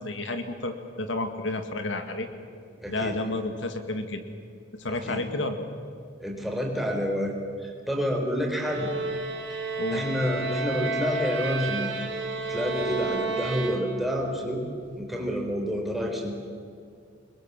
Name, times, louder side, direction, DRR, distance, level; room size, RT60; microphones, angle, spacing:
voice 1, 0.0-2.3 2.9-4.2 4.8-5.6 9.8-10.0, left 2 dB, 80° left, 6 dB, 2.1 m, -31 dB
voice 2, 2.8-3.2 4.8-5.2 6.2-8.9 9.9-12.0 12.5-14.6 15.0-16.3, equal, ahead, 0 dB, 4.1 m, -29 dB
sound 1, 8.6-14.3, right 3 dB, 85° right, 4.3 m, -31 dB
28.5 x 21.5 x 7.6 m, 2.3 s
head